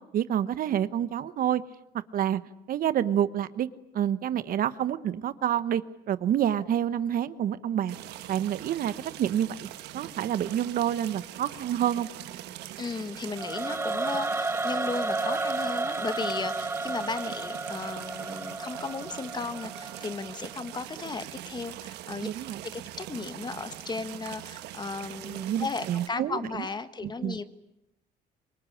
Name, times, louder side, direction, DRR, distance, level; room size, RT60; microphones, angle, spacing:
voice 1, 0.1-1.6 2.1-2.4 2.7-3.7 3.9-7.9 8.3-9.7 9.9-12.1 22.2-22.6 25.2-26.4 27.0-27.4, right 10 dB, 60° right, 14 dB, 1.1 m, -28 dB
sound 1, 7.9-26.1, right 13 dB, 85° right, 1.5 m, -42 dB
voice 2, 12.8-22.3 22.6-27.4, left 4 dB, 25° left, 11 dB, 1.6 m, -35 dB
Singing / Musical instrument, 13.4-20.5, right 3 dB, 15° right, 1.1 m, -32 dB
25.0 x 22.0 x 9.9 m, 0.91 s
cardioid pair, 110°, 17 cm